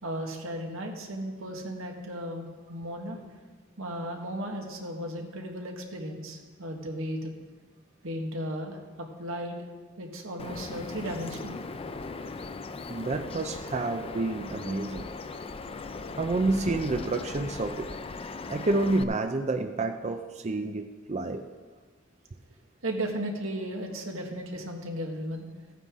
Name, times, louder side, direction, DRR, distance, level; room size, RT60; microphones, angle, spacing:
voice 1, 0.0-3.2 3.8-7.3 8.0-9.6 10.0-11.6 22.8-25.5, equal, 85° right, 2 dB, 1.6 m, -35 dB
Bird vocalization bird call bird song, 10.4-19.0, left 3 dB, 30° left, 0.4 m, -39 dB
voice 2, 12.9-15.1 16.2-17.9 18.5-21.5, right 2 dB, 35° right, 6 dB, 0.5 m, -29 dB
15.0 x 9.2 x 3.7 m, 1.4 s
head